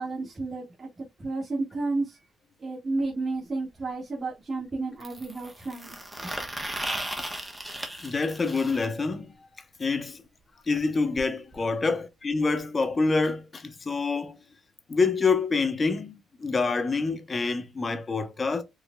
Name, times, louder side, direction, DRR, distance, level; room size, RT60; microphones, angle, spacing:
voice 1, 0.0-2.2 2.6-5.9 6.2-6.3, right 3 dB, 30° right, 1.6 m, -32 dB
sound 1, 3.0-3.1 5.0-8.9 10.8-10.9 11.2-11.3 11.5-11.7 12.6-12.7, right 1 dB, 10° right, 1.0 m, -36 dB
voice 2, 8.0-9.3 9.8-10.2 10.7-14.4 14.9-18.6, left 4 dB, 35° left, 0.8 m, -27 dB
4.7 x 2.6 x 2.2 m
cardioid pair, 90°, 0 cm